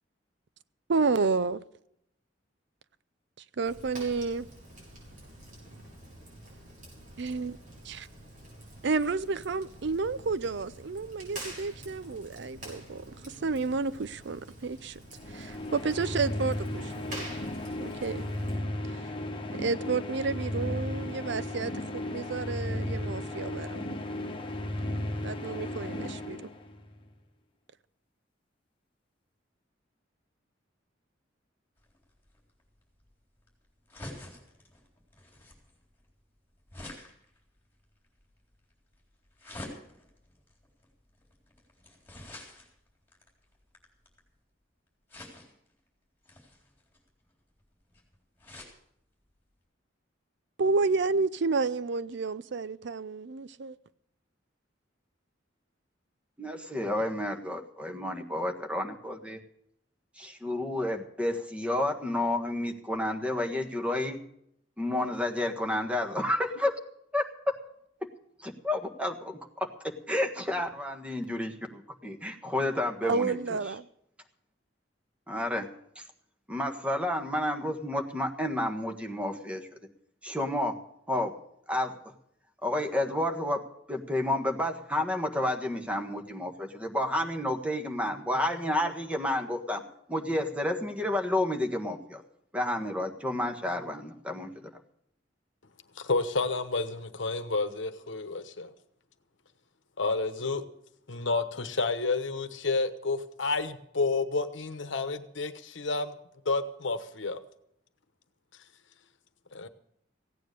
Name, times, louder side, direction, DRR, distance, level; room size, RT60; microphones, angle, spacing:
voice 1, 0.9-1.6 3.6-4.5 7.2-7.6 7.8-8.1 8.8-15.0 15.3-17.3 17.8-18.3 18.9-19.0 19.6-24.0 25.2-26.4 50.6-53.8 73.0-73.9, right 4 dB, 65° right, 0.6 m, -30 dB
Fire, 3.6-18.6, right 1 dB, 45° right, 6.4 m, -47 dB
sound 1, 15.1-27.0, left 1 dB, 30° left, 1.5 m, -35 dB
sound 2, 31.8-44.4 45.1-45.7 46.2-48.8 49.3-49.4 49.6-49.7, left 1 dB, 10° left, 3.8 m, -49 dB
voice 2, 56.4-59.4 60.2-64.2 64.8-66.7 67.1-67.3 68.4-69.4 70.1-73.4 75.3-75.7 75.9-76.0 76.5-79.7 80.2-80.7 81.1-81.3 81.7-82.0 82.6-83.6 83.9-89.8 90.1-92.2 92.5-94.7, left 1 dB, 5° right, 1.5 m, -30 dB
voice 3, 96.0-98.7 100.0-100.7 101.1-106.1 106.4-107.4 109.5-109.7, left 3 dB, 75° left, 1.1 m, -30 dB
16.0 x 9.4 x 6.7 m
head